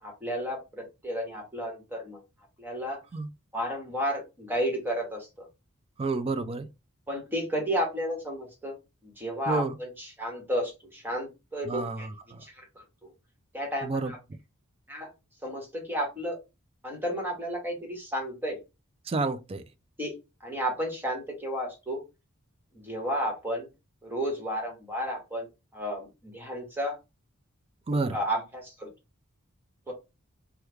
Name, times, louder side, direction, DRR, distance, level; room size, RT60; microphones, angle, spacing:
voice 1, 0.0-2.2 2.6-3.0 3.5-5.4 7.1-8.8 9.0-12.1 12.4-12.8 13.5-14.2 14.9-15.1 15.4-16.4 16.8-18.6 20.0-20.1 20.4-22.0 22.7-23.7 24.0-25.5 25.7-27.0 28.1-28.9 29.9-30.0, equal, 10° right, 1.2 m, -32 dB
voice 2, 6.0-6.7 9.5-9.7 11.7-12.4 13.8-14.1 19.1-19.6 27.9-28.2, right 3 dB, 25° right, 0.3 m, -29 dB
3.1 x 2.2 x 3.4 m
head